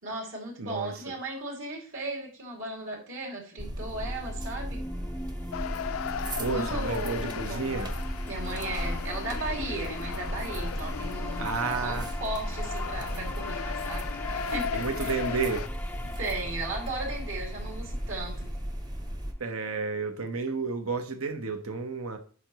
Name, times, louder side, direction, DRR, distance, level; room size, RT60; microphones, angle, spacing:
voice 1, 0.0-4.8 6.4-7.8 8.3-14.0 14.3-15.2 16.2-18.6, right 2 dB, 65° right, -1 dB, 2.6 m, -36 dB
voice 2, 0.6-1.1 6.4-7.9 11.4-12.1 14.7-15.7 19.4-22.2, right 4 dB, 85° right, 7 dB, 1.1 m, -31 dB
sound 1, 3.6-19.6, left 1 dB, 5° left, 0.3 m, -43 dB
sound 2, 3.6-19.3, equal, 20° right, 0.7 m, -35 dB
sound 3, 5.5-15.7, left 8 dB, 85° left, 0.4 m, -37 dB
9.6 x 5.8 x 3.1 m, 0.41 s
head